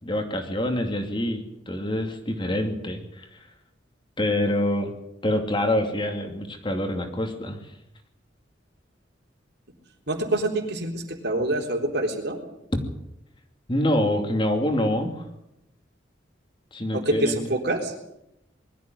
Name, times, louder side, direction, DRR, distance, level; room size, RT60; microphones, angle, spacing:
voice 1, 0.0-3.3 4.2-4.9 5.2-7.6 13.7-15.2 16.7-17.5, left 1 dB, 25° left, 5 dB, 2.7 m, -26 dB
voice 2, 10.1-12.4 16.9-17.9, right 1 dB, 60° right, 3 dB, 3.8 m, -26 dB
21.5 x 13.5 x 9.3 m, 0.85 s
head